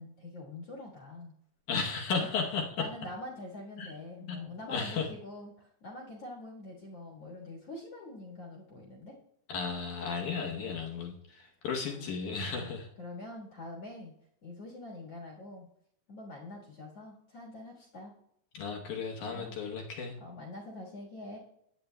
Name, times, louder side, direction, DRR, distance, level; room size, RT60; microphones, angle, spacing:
voice 1, 0.0-1.3 1.8-2.3 2.8-9.2 11.9-12.1 12.4-14.1 14.4-15.7 16.1-18.1 19.3-19.6 20.2-21.4, left 2 dB, 55° left, -1 dB, 2.1 m, -45 dB
voice 2, 1.7-2.8 3.8-3.9 4.3-5.1 9.5-12.9 18.5-20.2, left 5 dB, 70° left, 1 dB, 2.2 m, -34 dB
16.5 x 9.4 x 2.2 m, 0.74 s
omnidirectional pair, 4.1 m